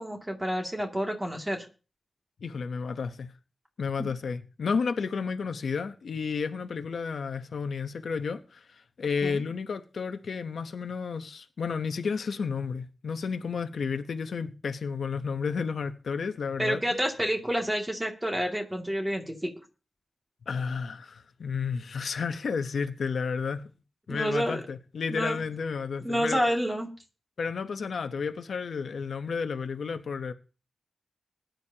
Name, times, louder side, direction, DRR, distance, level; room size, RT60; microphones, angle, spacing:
voice 1, 0.0-1.6 4.0-4.1 9.2-9.4 16.6-19.5 24.1-24.6 25.1-25.4 26.0-26.9, equal, 10° right, 2.4 m, -29 dB
voice 2, 2.4-3.3 3.8-16.8 20.5-23.6 24.1-26.4 27.4-30.3, left 5 dB, 75° left, 0.9 m, -32 dB
20.5 x 10.5 x 2.9 m
wide cardioid pair, 145°, 0 cm